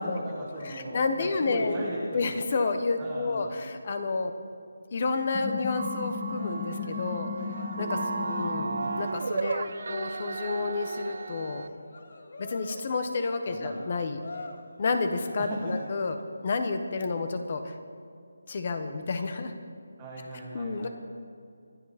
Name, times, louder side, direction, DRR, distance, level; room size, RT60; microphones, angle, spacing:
voice 1, 0.0-2.3 3.0-3.5 8.5-9.0 13.5-13.7 15.4-15.7 20.0-20.9, right 1 dB, 10° right, -10 dB, 2.0 m, -37 dB
voice 2, 0.6-1.8 2.1-4.3 4.9-8.0 8.3-11.7 12.4-14.2 14.8-16.2 16.4-17.7 18.5-19.5 20.5-20.9, left 4 dB, 35° left, 8 dB, 1.3 m, -30 dB
sound 1, 5.3-9.2, left 4 dB, 15° left, 0.6 m, -36 dB
sound 2, 5.7-11.7, right 4 dB, 50° right, 0.4 m, -35 dB
Cheering, 6.2-16.2, left 3 dB, 55° left, 1.4 m, -46 dB
26.5 x 9.9 x 4.4 m, 2.4 s
figure-of-eight pair, 170°, 0 cm